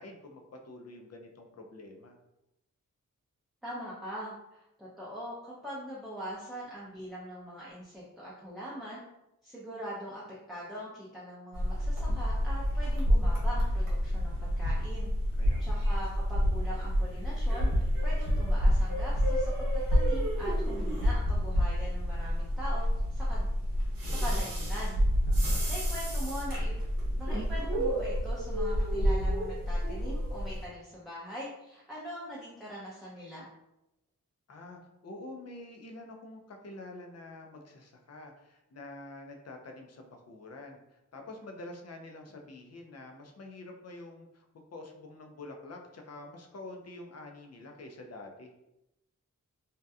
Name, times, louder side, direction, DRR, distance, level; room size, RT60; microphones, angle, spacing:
voice 1, 0.0-2.1 15.4-15.8 25.3-25.6 34.5-48.5, left 2 dB, 50° left, 3 dB, 0.5 m, -47 dB
voice 2, 3.6-9.0 9.4-10.2 10.5-15.1 15.6-23.5 24.0-25.0 25.7-26.8 27.1-33.5, equal, ahead, -7 dB, 0.5 m, -42 dB
sound 1, 11.5-30.7, equal, 90° right, 0.8 m, -28 dB
2.7 x 2.2 x 2.3 m, 0.90 s
wide cardioid pair, 70°, 34 cm